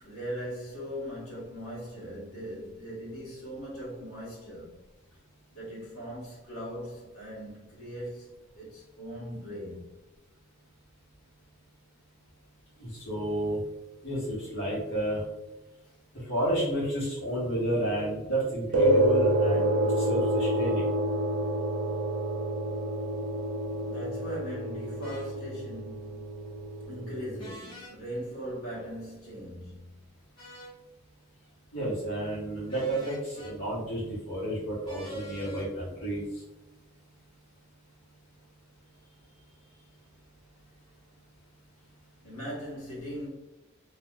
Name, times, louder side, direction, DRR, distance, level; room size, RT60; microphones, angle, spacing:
voice 1, 0.0-4.7 5.5-9.8 23.7-26.5 26.9-30.0 39.3-39.7 42.2-43.3, equal, 85° left, 1.3 m, -40 dB
voice 2, 12.8-13.6 14.0-15.2 16.3-20.8 31.7-36.2, right 1 dB, 60° left, 1.1 m, -31 dB
sound 1, 18.7-27.5, right 1 dB, 75° right, 0.7 m, -28 dB
sound 2, 25.0-25.3 27.4-27.9 30.4-30.8 32.7-33.5 34.8-35.7, right 1 dB, 20° left, 1.0 m, -45 dB
3.4 x 2.3 x 2.3 m
head